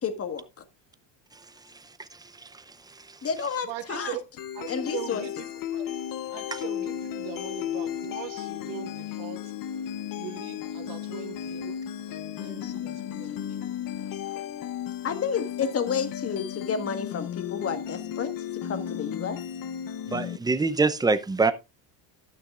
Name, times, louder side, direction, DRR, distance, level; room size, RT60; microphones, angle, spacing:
voice 1, 0.0-0.4 3.2-4.2 4.7-5.2 12.6-12.7 13.9-14.4 15.0-18.3 18.7-19.4, left 6 dB, 30° left, 1.6 m, -31 dB
voice 2, 3.6-4.2 4.5-5.3 5.7-5.9 6.3-9.5 10.2-11.8 12.1-13.3, right 11 dB, 75° right, 2.0 m, -40 dB
sound 1, 4.4-20.4, left 10 dB, 50° left, 0.9 m, -34 dB
voice 3, 20.1-21.5, right 3 dB, 10° right, 0.7 m, -24 dB
11.5 x 9.5 x 2.5 m
supercardioid pair, 110°, 43 cm